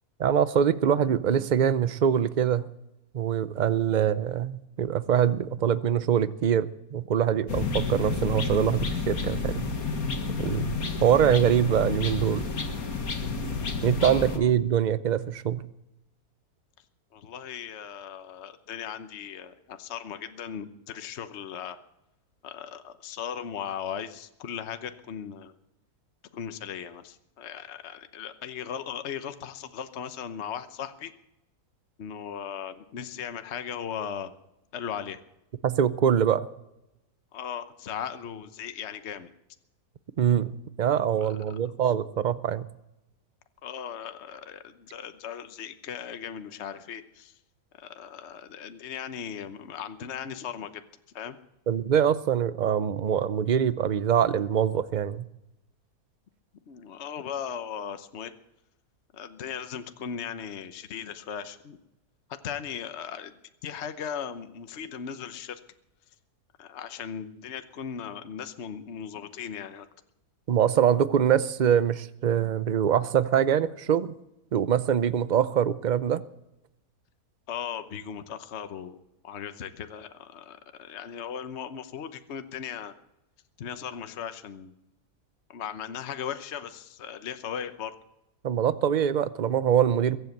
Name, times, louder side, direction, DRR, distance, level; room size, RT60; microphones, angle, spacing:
voice 1, 0.2-2.7 3.1-9.6 10.4-10.7 11.0-12.5 13.8-15.6 35.6-36.5 40.2-42.7 51.7-55.3 70.5-74.1 74.5-76.2 88.4-90.2, right 9 dB, 55° right, 14 dB, 0.5 m, -24 dB
sound 1, 7.5-14.4, left 4 dB, 65° left, 2.1 m, -30 dB
voice 2, 14.0-14.5 17.1-21.8 22.4-25.5 26.3-31.1 32.0-34.3 34.7-35.2 37.3-39.3 41.2-41.3 43.6-47.3 47.7-50.9 51.1-51.4 56.7-58.3 59.1-61.8 62.4-63.3 63.6-65.6 66.6-69.9 77.5-82.9 83.6-84.7 85.5-87.9, left 8 dB, 50° left, 9 dB, 1.1 m, -37 dB
22.5 x 8.1 x 7.9 m, 0.89 s
omnidirectional pair, 1.7 m